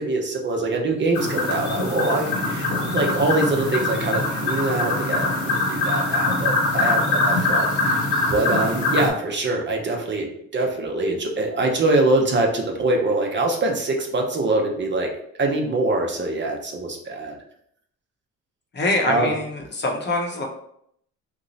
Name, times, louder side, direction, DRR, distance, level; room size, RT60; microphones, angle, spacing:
voice 1, 0.0-8.0 8.3-10.3 10.5-15.1 15.4-17.3 19.1-19.3, right 2 dB, 40° right, 1 dB, 0.6 m, -24 dB
sound 1, 1.1-9.1, left 2 dB, 70° left, 1.0 m, -23 dB
voice 2, 18.7-20.4, left 2 dB, 35° left, 1 dB, 0.7 m, -24 dB
2.9 x 2.0 x 3.9 m, 0.70 s
cardioid pair, 90°, 30 cm